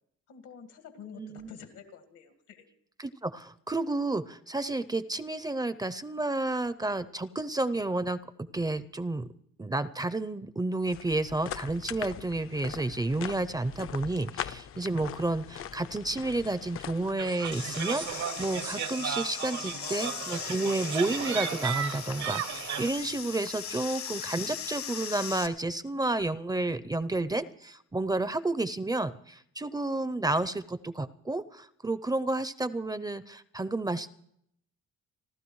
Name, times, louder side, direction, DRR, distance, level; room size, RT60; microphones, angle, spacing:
voice 1, 0.3-2.7, left 7 dB, 85° left, 6 dB, 1.9 m, -48 dB
voice 2, 1.2-1.5 3.0-9.3 9.6-34.1, right 2 dB, 15° right, 13 dB, 0.5 m, -31 dB
sound 1, 10.8-17.1, left 9 dB, 50° left, 0.5 m, -41 dB
sound 2, 17.2-22.9, right 9 dB, 70° right, 1.0 m, -35 dB
sound 3, 17.5-25.5, left 9 dB, 70° left, 1.3 m, -39 dB
30.0 x 12.0 x 3.1 m, 0.71 s
cardioid pair, 90°, 30 cm